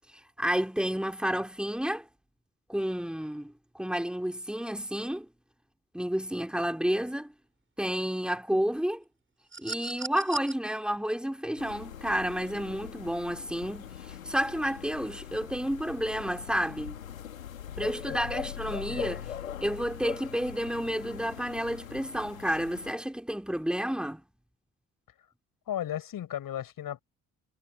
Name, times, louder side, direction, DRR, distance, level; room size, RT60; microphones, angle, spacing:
voice 1, 0.4-2.1 2.7-5.3 5.9-7.3 7.8-9.0 9.6-17.0 17.8-19.2 19.6-24.2, equal, ahead, 3.5 m, -30 dB
sound 1, 9.5-10.5 12.0-12.2, right 4 dB, 30° right, 7.8 m, -38 dB
sound 2, 11.6-22.9, left 9 dB, 90° left, 2.3 m, -41 dB
voice 2, 18.9-19.2 25.7-27.0, left 11 dB, 55° left, 7.9 m, -35 dB
hypercardioid pair, 50°, 39 cm